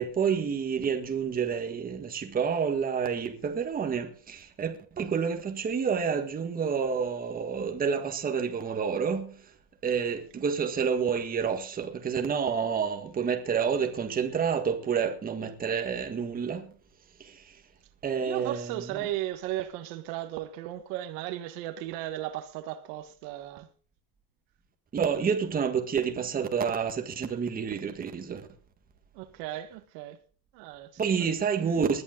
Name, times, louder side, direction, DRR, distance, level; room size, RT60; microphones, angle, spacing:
voice 1, 0.0-9.4 9.8-16.7 17.2-17.4 18.0-19.1 24.9-28.4 31.0-32.0, right 6 dB, 20° right, 1.7 m, -29 dB
voice 2, 18.2-23.7 29.1-30.2 30.5-31.0, right 14 dB, 60° right, 1.6 m, -36 dB
20.0 x 10.5 x 3.9 m
supercardioid pair, 155°, 48 cm